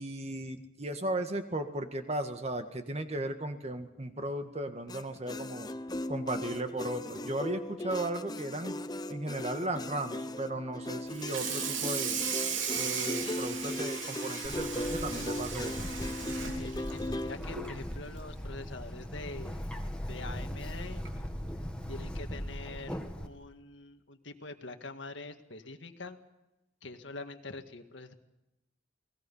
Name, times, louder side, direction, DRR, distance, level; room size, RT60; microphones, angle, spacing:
voice 1, 0.0-5.7 6.1-8.8 9.1-12.2 12.7-15.9, right 1 dB, 35° right, 7 dB, 1.7 m, -36 dB
sound 1, 4.9-17.4, left 1 dB, 20° left, 0.7 m, -38 dB
Water tap faucet / Sink (filling or washing), 11.1-17.8 18.2-18.4 18.8-18.9 19.3-19.4 20.5-20.6 21.0-21.3, right 6 dB, 85° right, 3.5 m, -37 dB
Bird, 14.4-23.3, equal, 5° left, 1.9 m, -39 dB
voice 2, 16.5-19.7 20.0-21.0 21.9-26.2 26.8-28.1, left 3 dB, 75° left, 6 dB, 1.9 m, -45 dB
30.0 x 20.0 x 5.7 m, 0.96 s
head